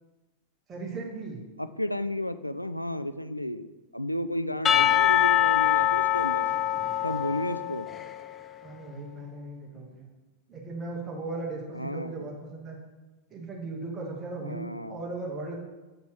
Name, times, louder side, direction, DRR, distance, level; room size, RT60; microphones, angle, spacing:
voice 1, 0.7-1.4 8.6-10.1 10.5-12.8 13.3-15.6, right 3 dB, 25° right, -2 dB, 1.9 m, -37 dB
voice 2, 1.6-6.5 7.0-7.9 11.7-12.3 14.4-15.0, left 1 dB, 90° left, 12 dB, 0.3 m, -32 dB
Percussion / Church bell, 4.7-8.3, left 11 dB, 25° left, 0.4 m, -24 dB
7.8 x 6.6 x 3.5 m, 1.1 s
figure-of-eight pair, 90°, 0 cm